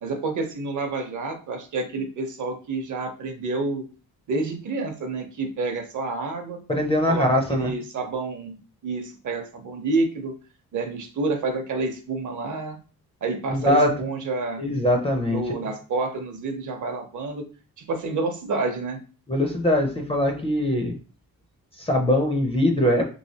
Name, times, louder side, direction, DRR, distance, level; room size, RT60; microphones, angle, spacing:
voice 1, 0.0-3.8 4.3-6.6 7.1-8.6 8.8-10.3 10.7-12.8 13.2-14.6 15.3-17.4 17.8-19.0, right 3 dB, 55° right, 5 dB, 0.7 m, -29 dB
voice 2, 6.7-7.7 13.5-13.9 14.6-15.4 19.3-21.0 21.8-23.1, left 1 dB, 15° left, 2 dB, 0.4 m, -22 dB
3.2 x 3.1 x 2.7 m, 0.37 s
wide cardioid pair, 175°, 36 cm